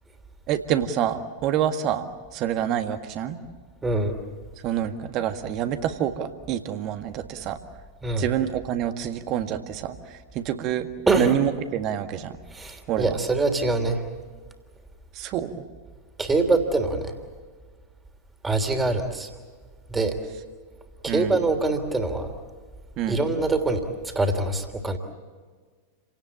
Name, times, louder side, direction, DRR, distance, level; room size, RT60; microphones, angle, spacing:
voice 1, 0.5-3.4 4.6-7.6 8.2-10.9 11.2-12.4 12.9-13.2 15.1-15.6 21.1-21.3 23.0-23.2, right 10 dB, 40° right, 8 dB, 1.8 m, -27 dB
voice 2, 3.8-4.1 8.0-8.2 11.1-11.3 12.5-14.0 16.2-17.2 18.4-19.3 19.9-20.1 21.0-22.3 23.1-23.8 24.1-25.0, right 3 dB, 10° right, 6 dB, 3.2 m, -24 dB
30.0 x 18.0 x 8.8 m, 1.5 s
figure-of-eight pair, 90°, 0 cm